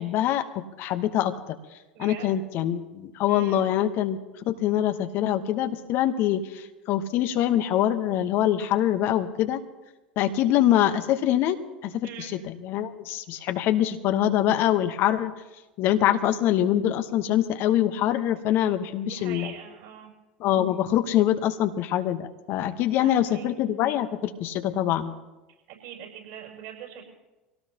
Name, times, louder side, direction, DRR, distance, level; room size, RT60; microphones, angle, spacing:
voice 1, 0.0-1.3 2.0-9.6 10.2-11.6 11.8-15.3 15.8-19.5 20.4-25.1, left 11 dB, 50° left, 8 dB, 1.1 m, -24 dB
voice 2, 1.9-2.4 3.3-3.6 12.0-12.4 19.0-20.1 23.0-23.5 25.7-27.0, right 9 dB, 60° right, 0 dB, 6.9 m, -42 dB
24.5 x 17.5 x 2.9 m, 1.1 s
figure-of-eight pair, 75°, 5 cm